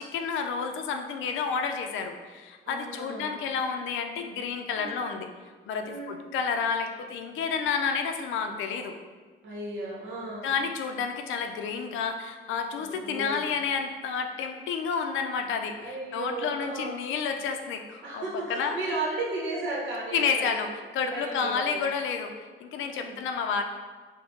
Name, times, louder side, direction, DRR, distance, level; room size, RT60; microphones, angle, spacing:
voice 1, 0.0-5.3 5.7-9.0 10.4-18.2 18.5-18.7 20.1-23.6, left 6 dB, 80° left, 5 dB, 0.4 m, -30 dB
voice 2, 2.6-3.3 4.8-5.0 5.8-6.2 9.4-10.5 12.8-13.4 15.8-17.0 18.0-20.5 21.1-21.8 22.8-23.2, right 2 dB, 70° right, -3 dB, 0.9 m, -35 dB
3.5 x 2.1 x 3.7 m, 1.4 s
cardioid pair, 90°, 20 cm